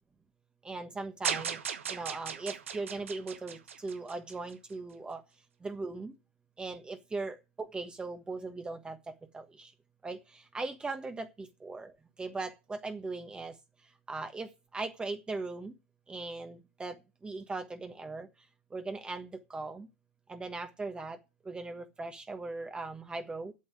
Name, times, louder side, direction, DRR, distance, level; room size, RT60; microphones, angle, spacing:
voice 1, 0.6-1.6 1.9-5.2 5.6-6.1 6.6-9.7 10.0-11.9 12.2-13.6 14.1-15.7 16.1-18.3 18.7-19.9 20.3-21.2 21.4-23.5, right 3 dB, 15° right, 1.3 m, -39 dB
sound 1, 1.2-4.5, right 7 dB, 80° right, 1.4 m, -37 dB
8.5 x 7.1 x 8.3 m
hypercardioid pair, 100°, 7 cm